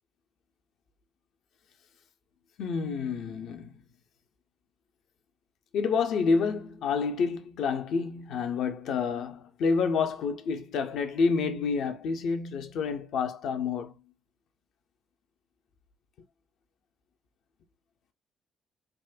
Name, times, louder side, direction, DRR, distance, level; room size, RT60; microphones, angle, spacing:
voice 1, 2.6-3.8 5.7-13.9, left 5 dB, 65° left, 0.5 m, -28 dB
3.5 x 2.1 x 2.4 m
hypercardioid pair, 45°, 0 cm